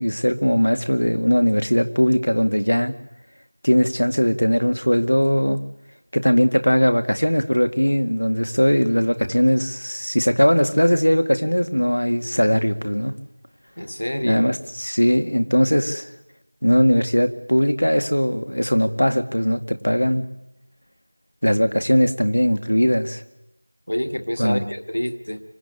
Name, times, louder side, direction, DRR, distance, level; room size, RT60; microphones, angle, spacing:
voice 1, 0.0-2.9 3.6-5.6 6.1-13.1 14.2-16.1 16.6-20.3 21.4-23.2 24.4-24.6, equal, 85° left, 8 dB, 2.3 m, -19 dB
voice 2, 13.8-14.4 23.9-25.4, equal, 35° left, 9 dB, 1.5 m, -27 dB
25.0 x 16.5 x 10.0 m, 0.87 s
figure-of-eight pair, 180°, 0 cm